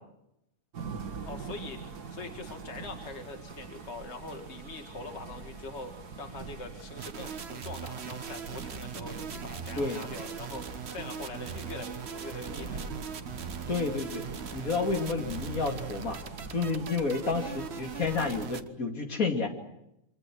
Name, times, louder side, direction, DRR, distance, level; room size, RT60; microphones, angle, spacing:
sound 1, 0.7-18.5, right 5 dB, 90° right, 2.2 m, -44 dB
voice 1, 1.2-1.8 2.1-13.1, left 3 dB, 45° left, 4 dB, 2.4 m, -43 dB
sound 2, 7.0-18.7, right 7 dB, 45° right, 1.2 m, -40 dB
sound 3, 10.3-16.7, equal, 80° left, 8.5 m, -52 dB
voice 2, 13.7-14.2 14.5-16.2 16.5-19.5, left 4 dB, 65° left, 3 dB, 3.2 m, -30 dB
26.5 x 25.0 x 6.4 m, 0.83 s
omnidirectional pair, 1.6 m